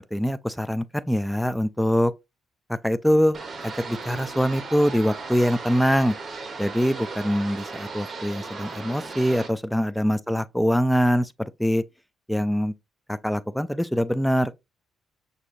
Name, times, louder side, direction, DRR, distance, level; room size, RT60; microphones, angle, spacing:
voice 1, 0.1-2.1 2.8-3.4 3.6-6.1 6.6-11.3 11.6-11.8 12.3-12.7 13.1-14.5, equal, 5° left, 0.3 m, -23 dB
sound 1, 3.3-9.5, right 4 dB, 40° right, 1.1 m, -36 dB
6.0 x 2.8 x 2.5 m
cardioid pair, 90°, 0 cm